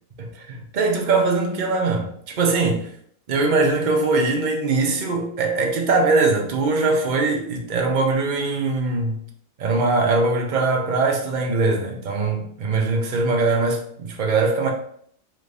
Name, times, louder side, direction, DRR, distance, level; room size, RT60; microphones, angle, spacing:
voice 1, 0.2-2.9 3.3-9.2 9.6-14.7, right 3 dB, 45° right, 0.6 m, -21 dB
4.1 x 2.6 x 3.3 m
omnidirectional pair, 1.5 m